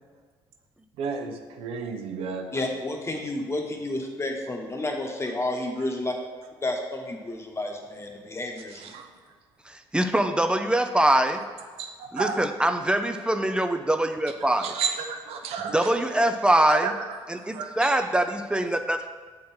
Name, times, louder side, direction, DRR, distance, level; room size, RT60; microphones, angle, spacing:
voice 1, 1.0-2.5 8.7-9.1 11.8-12.4 14.5-16.3 16.7-17.2 17.5-17.9, right 6 dB, 80° right, 4 dB, 0.7 m, -32 dB
voice 2, 2.5-6.1 6.6-8.9, left 2 dB, 25° left, 2 dB, 1.1 m, -31 dB
voice 3, 9.7-11.4 12.1-14.7 15.7-16.9 17.3-19.1, right 1 dB, 10° right, 7 dB, 0.4 m, -23 dB
7.3 x 3.7 x 4.4 m, 1.5 s
cardioid pair, 85°, 10 cm